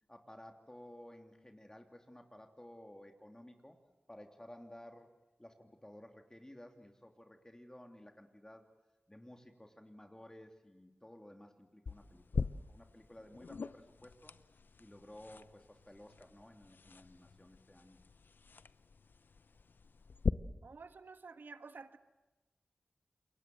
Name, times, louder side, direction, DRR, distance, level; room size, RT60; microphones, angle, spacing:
voice 1, 0.1-3.8 4.1-8.7 9.1-14.4 14.8-18.0, left 1 dB, 15° left, 4 dB, 3.0 m, -55 dB
sound 1, 11.9-20.3, left 4 dB, 75° left, 0.8 m, -42 dB
voice 2, 20.6-22.0, right 4 dB, 75° right, 10 dB, 1.4 m, -51 dB
28.0 x 22.5 x 7.7 m, 1.1 s
cardioid pair, 40°, 3 cm